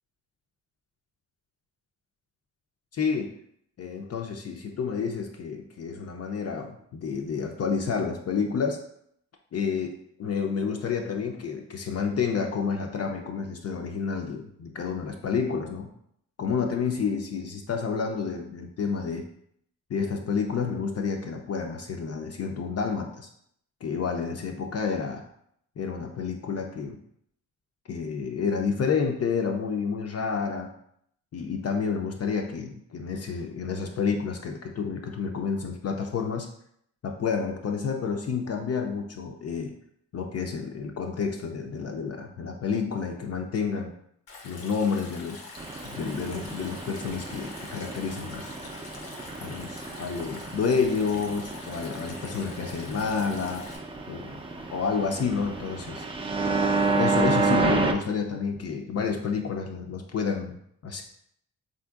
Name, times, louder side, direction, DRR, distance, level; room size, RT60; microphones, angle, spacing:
voice 1, 2.9-3.3 3.8-8.8 9.5-9.9 10.2-15.9 16.4-19.2 19.9-23.3 23.8-25.2 25.8-27.0 27.9-30.7 31.3-36.5 37.0-39.7 40.1-43.9 44.4-45.4 45.8-48.6 49.4-53.6 54.1-54.4 54.7-56.1 56.9-60.6 60.8-61.0, left 5 dB, 45° left, 3 dB, 0.4 m, -29 dB
Stream, 44.3-53.8, left 3 dB, 85° left, 0.7 m, -45 dB
sound 1, 45.6-57.9, right 3 dB, 15° right, 0.4 m, -30 dB
3.6 x 2.6 x 2.3 m, 0.71 s
supercardioid pair, 55°, 34 cm